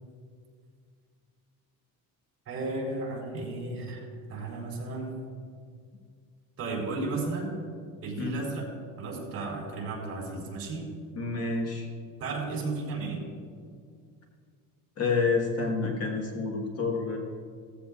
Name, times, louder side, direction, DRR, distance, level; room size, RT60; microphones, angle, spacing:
voice 1, 2.5-5.1 6.6-7.5 8.0-8.7 9.0-10.8 12.2-13.3, right 3 dB, 35° right, -3 dB, 3.8 m, -34 dB
voice 2, 11.1-11.9 15.0-17.2, left 4 dB, 40° left, 1 dB, 1.5 m, -28 dB
16.5 x 15.0 x 2.5 m, 2.1 s
cardioid pair, 170°, 38 cm